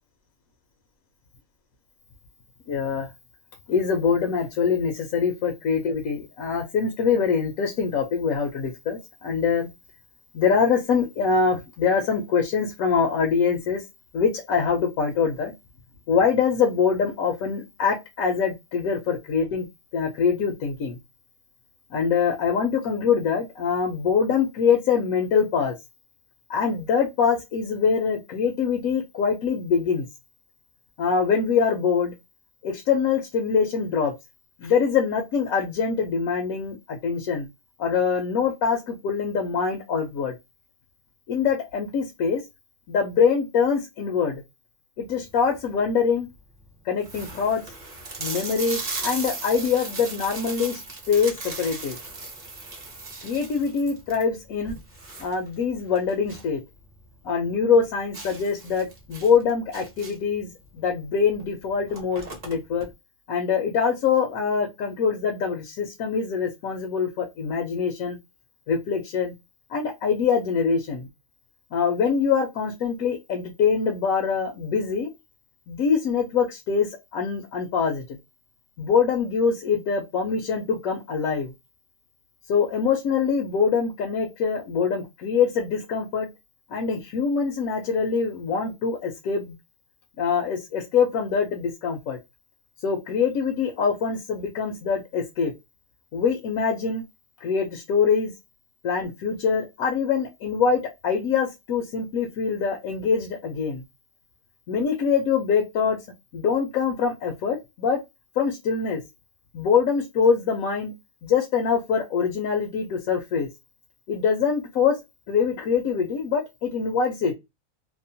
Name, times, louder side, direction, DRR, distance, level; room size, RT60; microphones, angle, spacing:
voice 1, 2.7-3.1 3.7-9.7 10.3-13.8 14.1-15.5 16.1-19.7 19.9-21.0 21.9-25.7 26.5-30.1 31.0-32.1 32.6-34.1 34.6-37.5 37.8-40.3 41.3-42.4 42.9-44.4 45.0-46.3 46.8-47.6 48.2-52.0 53.2-54.8 55.2-56.6 57.2-62.9 63.3-68.2 68.7-69.3 69.7-71.1 71.7-75.1 75.7-78.2 78.8-81.5 82.5-86.3 86.7-89.5 90.2-92.2 92.8-95.5 96.1-97.0 97.4-98.3 98.8-103.8 104.7-106.0 106.3-108.0 108.4-109.0 109.5-110.9 111.2-113.5 114.1-115.0 115.3-117.3, left 6 dB, 85° left, 2 dB, 1.1 m, -24 dB
sound 1, 45.2-45.7 46.3-46.4 46.6-46.7 47.0-56.6 56.9-57.0 57.4-57.5 58.1-60.4 61.3-61.4 61.7-62.9, right 3 dB, 35° right, 0.8 m, -37 dB
2.8 x 2.1 x 2.6 m, 0.21 s
omnidirectional pair, 1.4 m